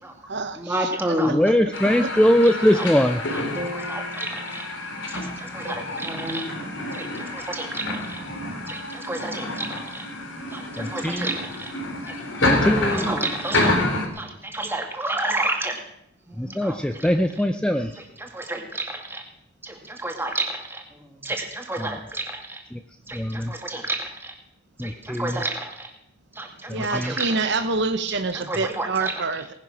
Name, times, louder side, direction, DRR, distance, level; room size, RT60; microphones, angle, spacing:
voice 1, 0.6-1.4 1.8-2.0 2.7-2.9 3.3-4.7 5.1-6.5 6.8-8.2 8.7-10.1 10.5-11.7 12.0-12.2 12.7-13.8 14.1-15.8 16.3-17.1 17.9-19.2 19.6-20.8 21.2-22.6 23.1-24.3 24.8-25.9 26.3-27.4 28.1-29.1, right 1 dB, 10° right, 3 dB, 2.3 m, -30 dB
voice 2, 1.3-3.2 10.8-11.3 12.4-13.0 16.4-17.9 22.7-22.8 23.1-23.5 24.8-25.4 26.7-27.2, equal, 5° left, 7 dB, 0.5 m, -21 dB
sound 1, 1.7-14.1, left 2 dB, 65° left, 3.2 m, -28 dB
sound 2, 3.6-7.6, equal, 30° right, 1.6 m, -41 dB
voice 3, 26.7-29.5, right 3 dB, 60° right, 9 dB, 1.0 m, -26 dB
18.5 x 10.5 x 6.3 m, 0.79 s
head